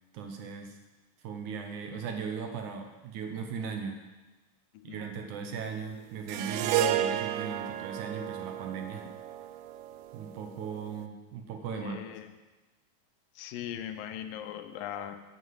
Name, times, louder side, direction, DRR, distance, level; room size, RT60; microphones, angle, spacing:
voice 1, 0.1-0.8 1.2-4.0 4.8-9.1 10.1-12.0, right 6 dB, 70° right, 5 dB, 2.1 m, -38 dB
sound 1, 6.3-10.9, right 10 dB, 90° right, 2.4 m, -32 dB
voice 2, 11.7-12.3 13.4-15.2, left 10 dB, 90° left, 8 dB, 2.4 m, -39 dB
9.5 x 8.8 x 7.7 m, 1.1 s
omnidirectional pair, 4.1 m